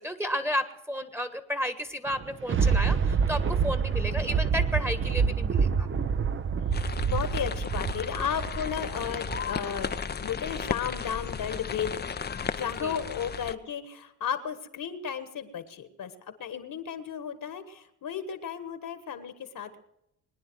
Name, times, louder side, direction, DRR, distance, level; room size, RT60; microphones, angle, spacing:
voice 1, 0.0-5.9 12.8-12.9, equal, 5° right, 9 dB, 1.4 m, -32 dB
Thunder, 2.1-9.6 10.1-10.2, right 6 dB, 30° right, 0.8 m, -27 dB
voice 2, 6.7-12.0 12.5-19.8, left 8 dB, 50° left, 10 dB, 1.6 m, -34 dB
sound 1, 6.7-13.6, left 6 dB, 25° left, 0.7 m, -35 dB
22.5 x 9.9 x 6.3 m, 0.83 s
hypercardioid pair, 60°, 42 cm